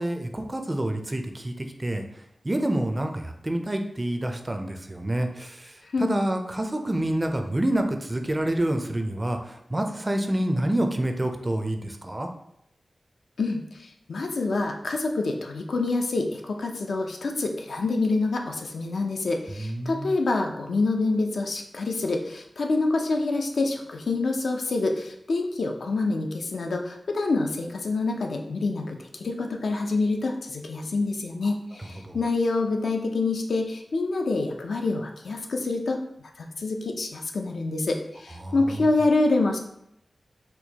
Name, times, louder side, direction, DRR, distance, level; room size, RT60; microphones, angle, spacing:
voice 1, 0.0-1.5 1.8-2.0 2.4-5.6 6.0-9.4 9.7-12.3 19.5-20.1 32.0-32.2 38.4-38.9, right 1 dB, 25° right, 5 dB, 0.4 m, -27 dB
voice 2, 14.1-36.0 36.4-39.6, left 3 dB, 80° left, 2 dB, 0.4 m, -26 dB
4.4 x 2.2 x 2.7 m, 0.78 s
wide cardioid pair, 95°, 0 cm